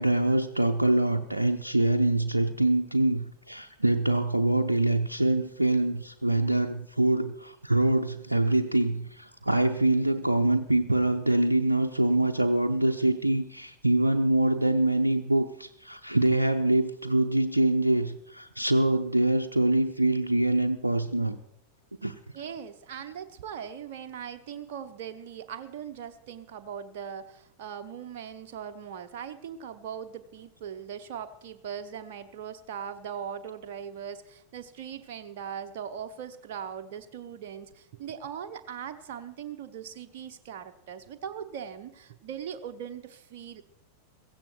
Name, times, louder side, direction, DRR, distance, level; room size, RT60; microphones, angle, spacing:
voice 1, 0.0-21.4 22.0-22.2, right 2 dB, 85° right, 0.6 m, -24 dB
voice 2, 22.3-43.6, right 8 dB, 50° right, 0.9 m, -40 dB
16.0 x 15.0 x 4.5 m
figure-of-eight pair, 90°, 0 cm